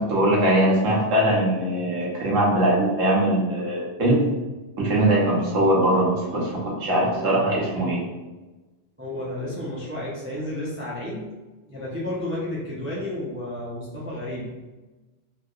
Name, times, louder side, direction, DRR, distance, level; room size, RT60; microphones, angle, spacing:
voice 1, 0.0-4.3 4.8-8.0, right 1 dB, 85° right, -5 dB, 1.3 m, -21 dB
voice 2, 6.9-7.4 9.0-11.3 11.7-14.5, left 1 dB, 15° right, -6 dB, 0.4 m, -32 dB
3.4 x 2.7 x 2.4 m, 1.2 s
omnidirectional pair, 1.3 m